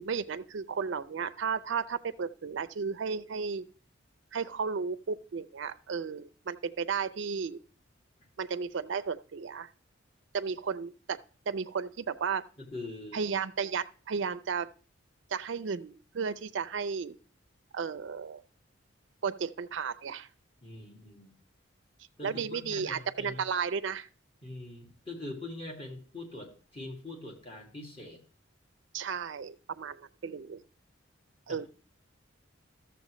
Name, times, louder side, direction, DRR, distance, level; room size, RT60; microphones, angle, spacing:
voice 1, 0.0-3.6 4.3-7.6 8.4-9.7 10.3-11.2 11.5-12.4 13.1-14.7 15.3-17.2 17.7-18.4 19.2-20.3 22.2-24.1 28.9-30.6 31.5-31.7, right 6 dB, 65° right, 0.4 m, -34 dB
voice 2, 12.6-13.2 20.6-21.4 22.2-23.4 24.4-28.2 31.5-31.7, left 2 dB, 30° left, 1.9 m, -43 dB
13.5 x 7.0 x 3.1 m
head